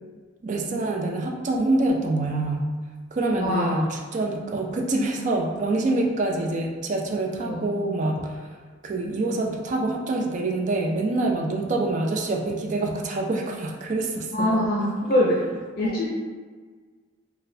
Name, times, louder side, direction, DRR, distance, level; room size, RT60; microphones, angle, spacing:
voice 1, 0.4-2.8 3.1-8.6 8.8-14.6 15.8-16.0, right 2 dB, 40° right, 1 dB, 0.4 m, -26 dB
voice 2, 3.4-3.8 7.4-7.7 14.3-15.4 15.8-16.1, left 1 dB, 50° left, -5 dB, 0.5 m, -23 dB
3.8 x 2.2 x 2.6 m, 1.5 s
head